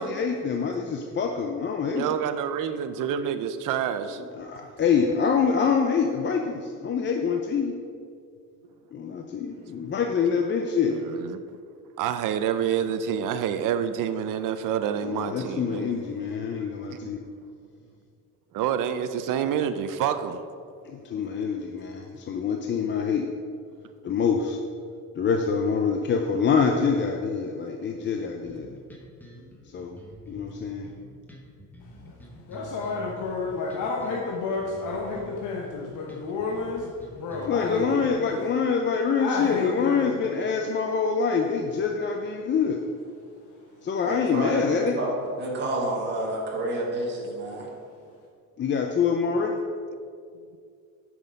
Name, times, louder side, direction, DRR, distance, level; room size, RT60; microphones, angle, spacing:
voice 1, 0.0-2.1 4.1-7.7 8.9-10.9 15.0-17.2 20.9-23.3 24.0-24.6 25.2-28.7 29.7-30.0 30.3-30.9 37.5-42.8 43.8-45.0 48.6-49.6, left 6 dB, 35° left, 3 dB, 0.5 m, -25 dB
voice 2, 1.9-4.2 10.8-11.4 12.0-16.0 16.9-17.1 18.5-20.4, right 8 dB, 80° right, 10 dB, 0.6 m, -28 dB
sound 1, 28.5-38.1, equal, 5° left, 1.2 m, -47 dB
voice 3, 32.4-38.4 39.2-40.1, left 4 dB, 70° left, -2 dB, 1.1 m, -30 dB
voice 4, 44.0-47.7, right 1 dB, 35° right, -3 dB, 1.7 m, -29 dB
9.1 x 6.1 x 5.2 m, 2.3 s
cardioid pair, 155°, 32 cm